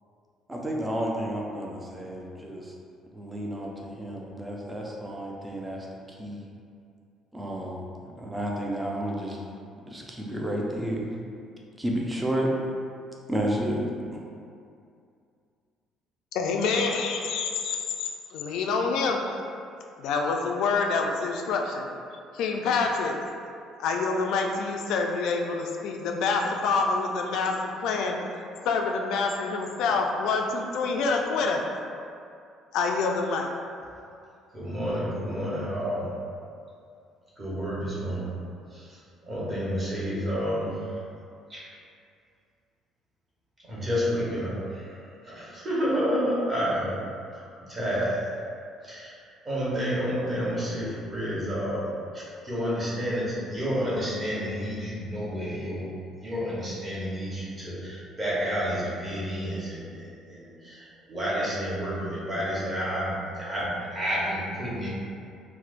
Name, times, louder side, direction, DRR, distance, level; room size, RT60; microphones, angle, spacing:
voice 1, 0.5-2.7 3.1-6.4 7.3-9.4 9.9-11.1 11.8-12.5 13.3-14.2, right 1 dB, 10° right, -2 dB, 0.4 m, -31 dB
voice 2, 16.3-19.4 20.0-21.9 22.3-23.2 23.8-28.2 28.6-31.6 32.7-33.5, left 4 dB, 75° left, 2 dB, 0.3 m, -27 dB
voice 3, 34.5-36.1 37.4-38.3 38.7-40.8 41.5-41.6 43.6-46.9 47.3-48.2 48.8-51.8 52.1-55.9 56.2-64.9, equal, 25° right, -8 dB, 1.0 m, -30 dB
4.4 x 2.0 x 2.4 m, 2.4 s
cardioid pair, 130°, 0 cm